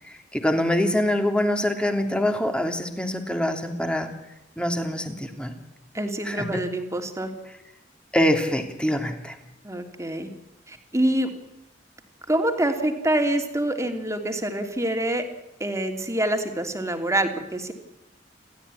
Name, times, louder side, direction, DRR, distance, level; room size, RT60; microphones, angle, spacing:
voice 1, 0.1-4.1 4.6-5.5 6.2-6.6 8.1-9.3, left 1 dB, 5° left, 6 dB, 3.0 m, -24 dB
voice 2, 5.9-7.3 9.6-10.3 10.7-11.3 12.3-15.2 15.6-17.7, right 1 dB, 15° right, 6 dB, 3.1 m, -26 dB
29.5 x 13.5 x 10.0 m, 0.92 s
head